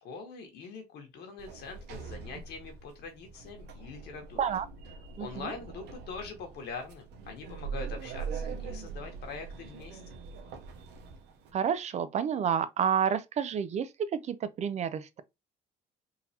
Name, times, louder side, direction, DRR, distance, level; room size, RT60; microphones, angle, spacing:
voice 1, 0.0-4.4 5.2-10.0, left 4 dB, 75° left, 1.4 m, -43 dB
Sliding door, 1.4-11.5, right 5 dB, 85° right, 0.8 m, -42 dB
voice 2, 5.2-5.5 11.5-15.2, right 8 dB, 40° right, 0.4 m, -30 dB
3.9 x 2.7 x 2.8 m
cardioid pair, 110°, 17 cm